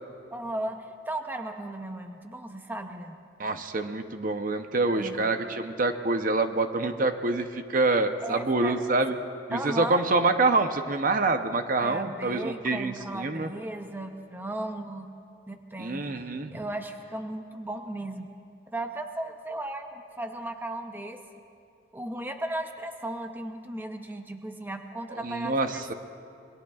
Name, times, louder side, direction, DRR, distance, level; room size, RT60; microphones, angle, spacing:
voice 1, 0.3-3.2 4.9-5.3 8.2-8.8 9.5-10.0 11.8-15.1 15.5-16.1 16.5-18.3 18.7-21.2 21.9-25.9, right 1 dB, 10° right, 5 dB, 0.7 m, -36 dB
voice 2, 3.4-9.1 9.5-13.5 15.8-16.5 25.1-25.9, right 3 dB, 45° right, 7 dB, 0.7 m, -26 dB
27.5 x 22.0 x 2.4 m, 2.5 s
head